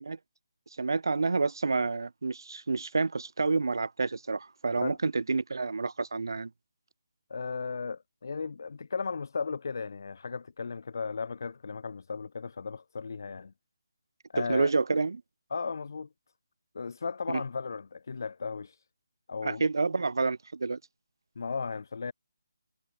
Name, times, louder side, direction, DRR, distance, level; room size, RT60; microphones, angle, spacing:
voice 1, 0.8-6.5 14.4-15.2 17.3-17.4 19.4-20.8, right 4 dB, 70° right, 4.1 m, -29 dB
voice 2, 7.3-13.5 14.3-14.7 15.5-16.1 16.7-18.8 19.3-19.7 21.3-22.1, left 5 dB, 55° left, 3.3 m, -35 dB
hypercardioid pair, 170°, 2 cm